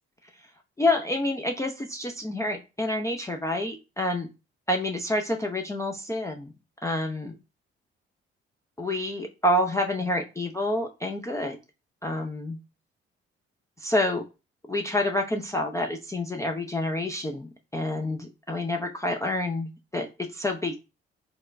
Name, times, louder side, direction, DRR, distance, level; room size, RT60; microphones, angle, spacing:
voice 1, 0.8-4.3 4.7-6.5 6.8-7.4 8.8-11.6 12.0-12.6 13.8-14.2 14.7-20.8, left 1 dB, 10° left, 2 dB, 0.4 m, -28 dB
4.4 x 2.1 x 2.5 m, 0.28 s
figure-of-eight pair, 40°, 30 cm